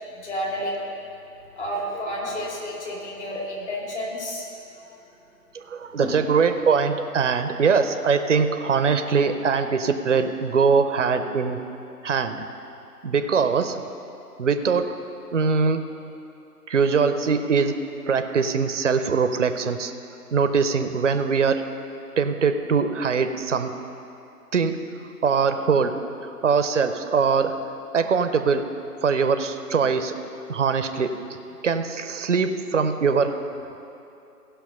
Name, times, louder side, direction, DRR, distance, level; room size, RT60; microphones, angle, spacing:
voice 1, 0.2-0.8 1.6-4.5 6.0-6.1, equal, 45° left, -3 dB, 2.7 m, -30 dB
voice 2, 5.7-11.6 12.0-12.5 13.0-13.8 14.4-14.8 15.3-15.8 16.7-17.7 18.1-19.9 20.3-21.6 22.2-23.7 24.5-24.7 25.2-25.9 26.4-27.5 27.9-28.6 29.0-30.1 30.5-31.1 31.6-33.4, right 5 dB, 50° right, 8 dB, 0.6 m, -22 dB
16.0 x 5.7 x 5.5 m, 2.8 s
figure-of-eight pair, 150°, 47 cm